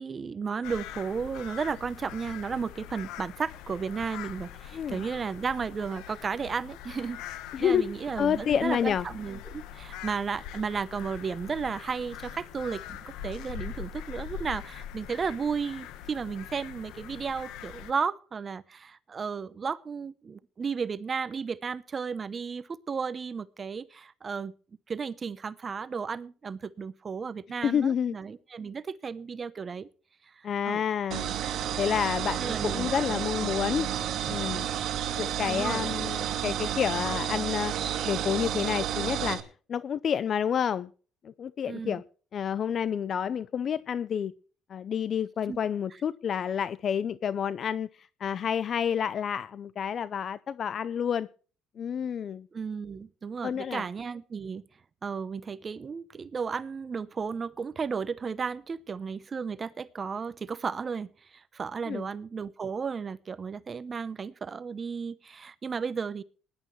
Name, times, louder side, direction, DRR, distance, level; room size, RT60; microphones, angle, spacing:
voice 1, 0.0-7.2 7.6-24.5 24.9-29.9 30.3-30.8 32.4-32.9 33.4-33.6 35.5-36.0 41.7-42.0 45.5-45.6 52.5-54.6 55.0-66.2, right 5 dB, 30° right, 15 dB, 0.8 m, -34 dB
sound 1, 0.6-17.9, left 10 dB, 85° left, 1.2 m, -43 dB
voice 2, 7.5-7.9 8.2-9.1 27.6-28.2 30.4-31.4 31.8-33.9 34.3-34.7 35.1-37.7 38.0-40.9 41.2-42.0 42.3-44.3 44.7-51.3 51.8-52.5 53.4-53.8 61.9-62.1, left 8 dB, 45° left, 16 dB, 0.5 m, -29 dB
sound 2, 31.1-39.4, right 10 dB, 60° right, 2.2 m, -31 dB
19.5 x 11.5 x 3.2 m, 0.39 s
cardioid pair, 115°, 0 cm